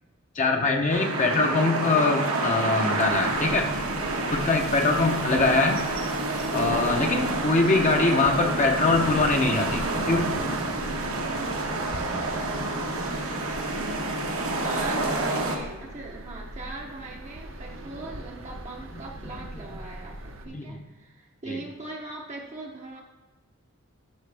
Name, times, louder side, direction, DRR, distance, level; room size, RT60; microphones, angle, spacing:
voice 1, 0.3-3.7 4.3-5.8 6.5-10.2 20.5-20.8 21.5-21.6, left 3 dB, 35° left, 2 dB, 0.6 m, -23 dB
sound 1, 0.9-15.6, right 2 dB, 85° right, 1.2 m, -28 dB
voice 2, 1.1-1.6 4.8-5.2 14.5-23.0, right 2 dB, 30° right, -1 dB, 0.6 m, -40 dB
sound 2, 3.0-20.5, right 1 dB, 65° right, 0.8 m, -41 dB
sound 3, 8.7-19.9, right 1 dB, 80° left, 2.4 m, -43 dB
12.0 x 5.6 x 3.4 m, 1.2 s
head